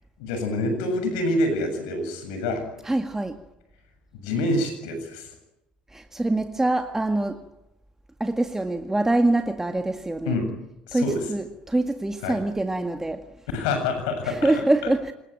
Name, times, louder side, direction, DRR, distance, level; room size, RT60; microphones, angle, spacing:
voice 1, 0.2-2.7 4.2-5.3 10.2-10.5 10.9-11.2 12.2-12.4 13.5-14.9, left 2 dB, 75° left, 7.4 m, -26 dB
voice 2, 2.8-3.4 5.9-7.5 8.2-10.4 10.9-13.3 14.2-15.1, right 2 dB, 10° right, 1.9 m, -24 dB
26.0 x 22.0 x 9.2 m
hypercardioid pair, 70°, 4 cm